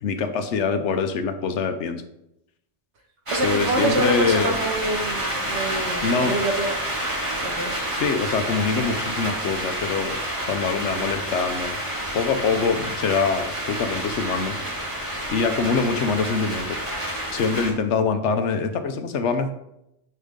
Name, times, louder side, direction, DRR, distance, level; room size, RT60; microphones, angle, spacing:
voice 1, 0.0-2.0 3.4-4.6 6.0-6.4 7.9-10.2 10.5-11.8 12.1-14.6 15.3-16.8 17.3-19.5, left 5 dB, 85° left, 8 dB, 1.1 m, -24 dB
sound 1, 3.3-17.7, right 1 dB, 25° right, 2.2 m, -29 dB
voice 2, 3.3-6.8 7.4-7.7, right 2 dB, 75° right, 4 dB, 1.4 m, -26 dB
10.0 x 4.4 x 3.7 m, 0.82 s
omnidirectional pair, 1.2 m